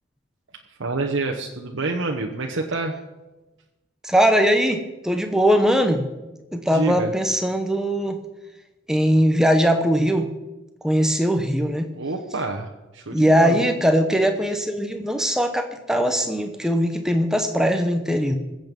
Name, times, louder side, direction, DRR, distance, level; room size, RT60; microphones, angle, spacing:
voice 1, 0.8-2.9 6.7-7.1 11.9-12.7 12.9-13.6, right 3 dB, 85° right, 1 dB, 1.0 m, -27 dB
voice 2, 4.0-6.1 6.5-8.2 8.9-10.3 10.8-11.9 13.1-18.4, equal, 5° right, 6 dB, 0.9 m, -20 dB
20.5 x 7.9 x 5.3 m, 1.1 s
head